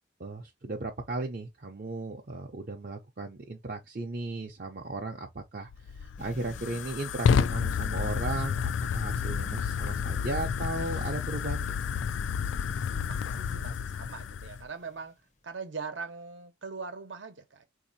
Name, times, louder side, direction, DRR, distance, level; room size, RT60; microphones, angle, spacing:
voice 1, 0.2-5.7 5.9-11.8, right 2 dB, 50° right, 0.6 m, -36 dB
Fire, 5.7-14.7, left 7 dB, 85° left, 0.3 m, -30 dB
sound 1, 6.2-15.2, left 2 dB, 40° left, 0.6 m, -51 dB
voice 2, 12.9-15.2 15.4-17.6, right 4 dB, 80° right, 0.8 m, -41 dB
3.9 x 2.7 x 2.6 m
head